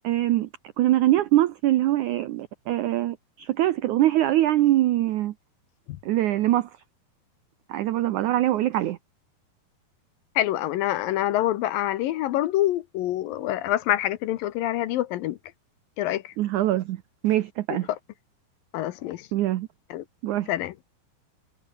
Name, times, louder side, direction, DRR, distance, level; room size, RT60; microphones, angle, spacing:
voice 1, 0.0-0.5 0.8-5.3 6.0-6.7 7.7-9.0 16.4-17.0 17.2-17.9 19.3-19.7 20.2-20.5, right 14 dB, 80° right, 1.7 m, -23 dB
voice 2, 10.4-15.4 16.0-16.3 18.7-19.2 19.9-20.0 20.5-20.7, left 14 dB, 75° left, 2.4 m, -26 dB
omnidirectional pair, 4.6 m